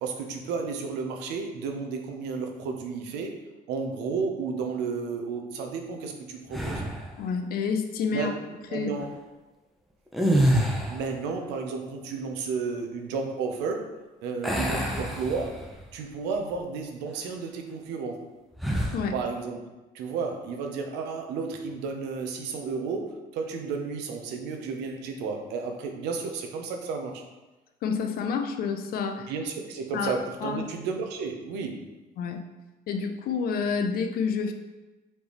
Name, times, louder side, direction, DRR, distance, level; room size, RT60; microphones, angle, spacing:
voice 1, 0.0-3.4 3.7-6.8 8.1-8.3 8.7-9.1 10.9-15.6 15.9-18.2 19.1-19.6 19.9-27.2 29.3-31.8, right 5 dB, 90° right, 3 dB, 0.6 m, -32 dB
sound 1, 6.5-7.2 10.1-11.2 14.4-15.9 16.3-16.5 18.6-19.1, right 1 dB, ahead, 0.6 m, -26 dB
voice 2, 7.2-8.3 8.7-8.9 18.9-19.2 27.8-29.3 29.9-30.1 30.4-30.6 32.2-32.4 32.9-34.5, left 5 dB, 60° left, 6 dB, 0.5 m, -28 dB
4.2 x 3.4 x 3.0 m, 1.1 s
cardioid pair, 110°, 17 cm